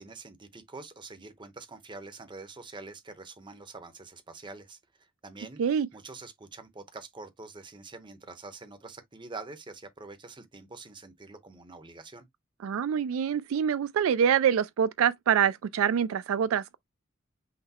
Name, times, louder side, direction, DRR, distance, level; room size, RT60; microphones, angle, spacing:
voice 1, 0.0-5.6 5.9-12.3, right 3 dB, 20° right, 0.8 m, -45 dB
voice 2, 12.6-16.8, right 8 dB, 70° right, 0.3 m, -25 dB
5.8 x 2.1 x 4.1 m
head